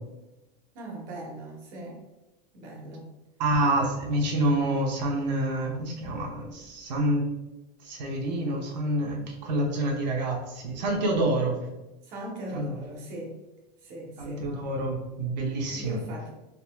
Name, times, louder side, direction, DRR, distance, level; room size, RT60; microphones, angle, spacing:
voice 1, 0.7-2.0 2.5-3.1 12.0-13.4 13.8-14.5 15.7-16.3, right 1 dB, 40° right, -1 dB, 1.0 m, -39 dB
voice 2, 3.4-7.3 7.8-11.6 12.5-12.7 14.2-16.0, right 1 dB, 85° right, 0 dB, 0.9 m, -27 dB
3.9 x 2.8 x 2.3 m, 1.0 s
supercardioid pair, 170°, 21 cm